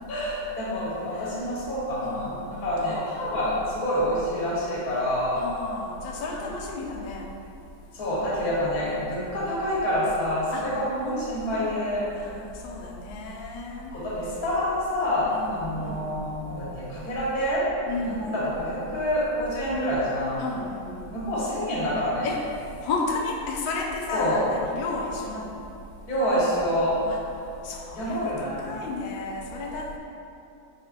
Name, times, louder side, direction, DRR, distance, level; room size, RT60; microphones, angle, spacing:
voice 1, 0.1-2.3 2.6-5.4 7.9-12.0 13.9-17.6 18.0-20.4 21.1-22.3 24.1-24.4 26.1-26.9 27.9-28.7, equal, 60° left, -8 dB, 1.6 m, -27 dB
voice 2, 2.0-3.1 3.4-3.6 5.3-7.3 8.8-9.1 10.5-10.7 11.0-11.7 12.1-13.9 15.3-16.1 17.9-18.2 20.4-21.1 22.2-22.4 22.8-25.6 27.0-27.2 27.6-28.3 28.6-30.0, left 3 dB, 90° left, 0 dB, 1.3 m, -33 dB
4.9 x 4.1 x 2.4 m, 2.8 s
omnidirectional pair, 1.9 m